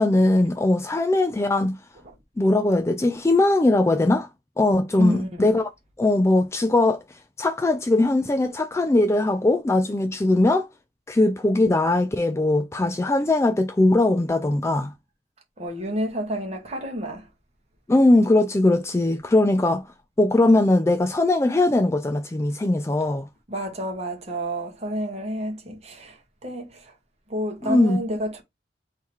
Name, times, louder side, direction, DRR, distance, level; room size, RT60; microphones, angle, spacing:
voice 1, 0.0-1.8 2.4-4.3 4.6-5.7 6.0-7.0 7.4-10.7 11.1-14.9 17.9-19.8 20.2-23.3 27.6-28.0, left 2 dB, 15° left, 0.3 m, -20 dB
voice 2, 5.0-5.4 15.6-17.3 23.5-26.9 27.3-28.4, equal, 35° right, 1.3 m, -30 dB
3.7 x 2.8 x 4.5 m
head